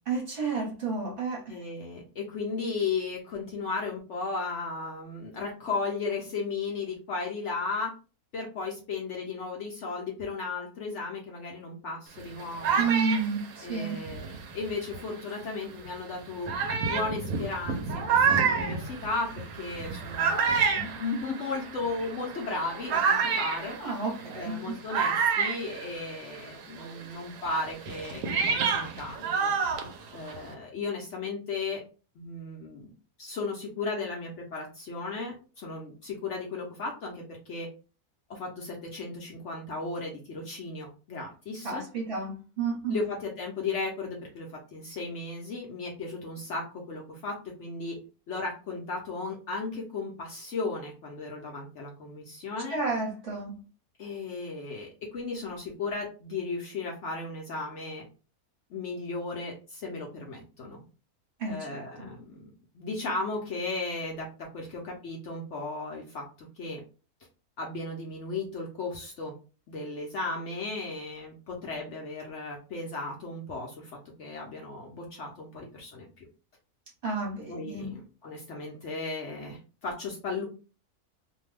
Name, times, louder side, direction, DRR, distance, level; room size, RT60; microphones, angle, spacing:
voice 1, 0.1-1.5 12.8-14.0 23.8-24.8 41.6-43.0 52.7-53.5 61.4-62.1 77.0-77.9, right 4 dB, 40° right, -3 dB, 1.1 m, -31 dB
voice 2, 1.5-7.9 8.3-12.9 13.6-16.5 16.8-23.8 24.3-29.5 30.1-31.8 32.2-32.9 33.2-37.7 38.3-41.8 42.9-48.0 48.3-52.8 54.0-58.0 58.7-60.8 61.5-62.4 62.7-66.8 67.6-69.3 69.7-73.9 74.2-76.3 77.5-80.4, left 3 dB, 60° left, -1 dB, 0.8 m, -35 dB
sound 1, 12.2-15.2 15.9-16.0 16.5-26.5 26.8-30.5, right 6 dB, 65° right, 0.9 m, -29 dB
2.6 x 2.2 x 3.2 m, 0.35 s
omnidirectional pair, 1.6 m